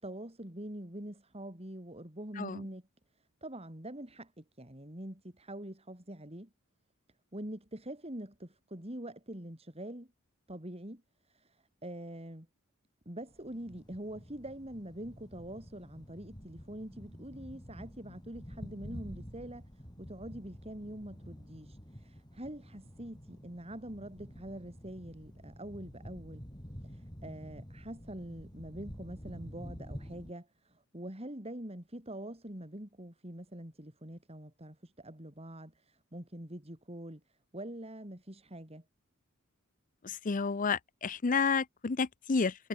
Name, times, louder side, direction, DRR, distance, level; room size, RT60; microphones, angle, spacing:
voice 1, 0.0-2.8 3.4-6.5 7.3-10.1 10.5-11.0 11.3-12.5 13.1-19.7 20.0-26.4 26.8-38.8, right 1 dB, 30° right, 4.1 m, -44 dB
sound 1, 13.3-30.3, equal, 20° left, 6.7 m, -49 dB
voice 2, 40.0-42.7, left 5 dB, 40° left, 0.6 m, -31 dB
head